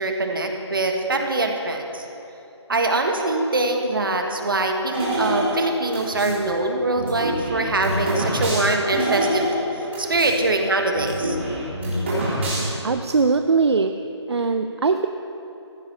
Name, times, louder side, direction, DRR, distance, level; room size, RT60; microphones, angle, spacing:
voice 1, 0.0-2.1 2.7-9.5 10.0-11.4, right 2 dB, 50° right, 3 dB, 1.5 m, -23 dB
sound 1, 4.9-6.4 6.9-10.4 10.6-10.7 10.9-12.9, right 1 dB, 25° right, 3.2 m, -26 dB
voice 2, 12.6-13.9 14.3-15.1, right 4 dB, 65° right, 8 dB, 0.6 m, -21 dB
15.0 x 10.0 x 5.5 m, 3.0 s
hypercardioid pair, 180°, 15 cm